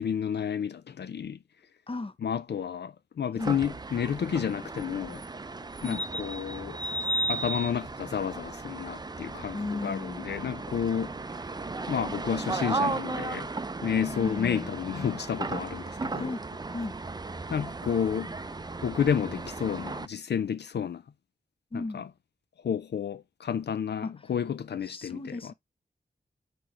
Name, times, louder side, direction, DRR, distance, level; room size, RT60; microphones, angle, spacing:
voice 1, 0.0-1.4 2.2-5.2 5.8-6.8 7.3-11.5 11.9-13.5 13.8-16.3 17.5-18.3 18.8-21.0 21.7-22.1 22.6-25.5, left 8 dB, 75° left, 0.4 m, -31 dB
sound 1, 3.4-20.1, right 3 dB, 25° right, 0.5 m, -35 dB
voice 2, 9.5-10.3 14.1-14.7 16.1-17.0 21.7-22.0 24.0-24.3 24.9-25.5, left 2 dB, 30° left, 0.7 m, -36 dB
6.1 x 4.5 x 4.9 m
wide cardioid pair, 100°, 18 cm